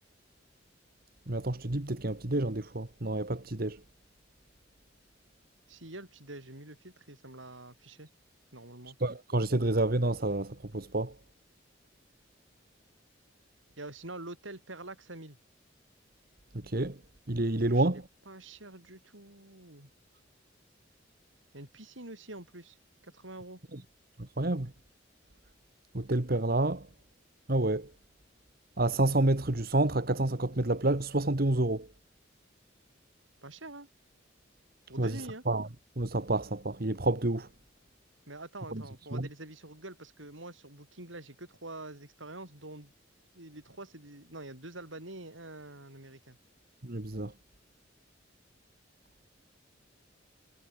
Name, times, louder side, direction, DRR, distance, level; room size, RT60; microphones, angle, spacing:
voice 1, 1.3-3.8 9.0-11.1 16.5-17.0 17.3-18.0 24.2-24.7 25.9-26.9 27.5-27.9 28.8-31.9 35.0-35.2 35.5-35.7 36.0-37.5 38.7-38.8 39.1-39.3 46.8-47.3, right 2 dB, 50° right, 1.6 m, -29 dB
voice 2, 5.7-8.1 8.5-9.0 13.8-15.4 17.7-19.9 21.5-22.8 23.0-23.6 33.4-33.9 34.9-35.4 38.3-42.9 43.3-46.4, right 2 dB, 80° right, 7.3 m, -46 dB
head